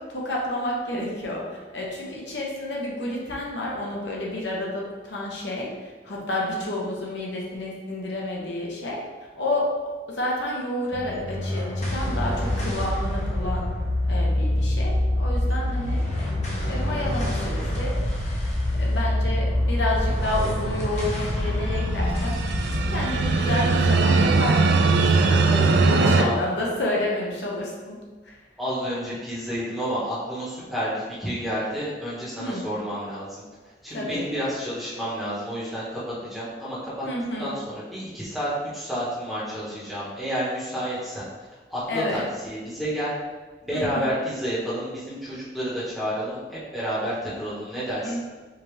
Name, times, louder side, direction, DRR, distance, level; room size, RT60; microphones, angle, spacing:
voice 1, 0.0-9.0 9.3-9.8 10.1-13.7 14.1-16.1 16.6-18.0 18.8-22.4 22.9-28.0 28.2-28.4 32.4-32.6 33.9-34.2 37.0-37.6 41.9-42.3 43.7-44.1 48.0-48.2, left 1 dB, 80° left, -3 dB, 0.9 m, -30 dB
sound 1, 10.9-25.5, left 1 dB, 40° left, 0.9 m, -26 dB
sound 2, 21.7-26.2, right 3 dB, 65° right, 0.3 m, -20 dB
voice 2, 25.9-26.4 28.6-33.3 33.8-37.1 37.4-41.2 41.7-43.1 43.6-48.1, equal, ahead, -10 dB, 1.2 m, -30 dB
5.0 x 2.8 x 3.2 m, 1.3 s
head